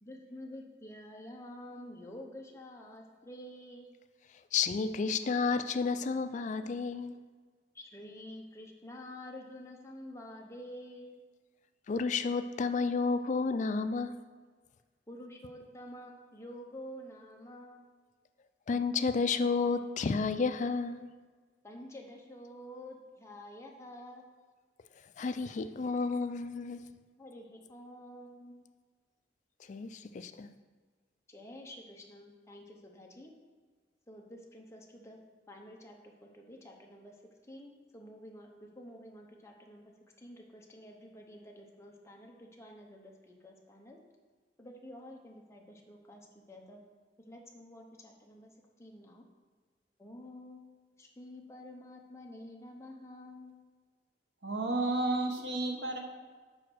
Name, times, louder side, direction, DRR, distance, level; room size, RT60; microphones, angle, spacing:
voice 1, 0.0-3.9 7.7-11.2 15.1-17.9 21.6-24.3 27.2-28.7 31.3-33.3 34.1-35.2 35.5-37.2 37.5-44.0 44.6-46.8 47.3-49.2 50.0-53.5, left 1 dB, 15° left, 0 dB, 0.8 m, -49 dB
voice 2, 4.5-7.2 11.9-14.1 18.7-21.1 25.2-26.8 29.7-30.5, left 4 dB, 45° left, 10 dB, 0.3 m, -31 dB
voice 3, 54.4-56.0, right 2 dB, 75° right, 2 dB, 1.0 m, -31 dB
5.0 x 4.9 x 6.2 m, 1.5 s
head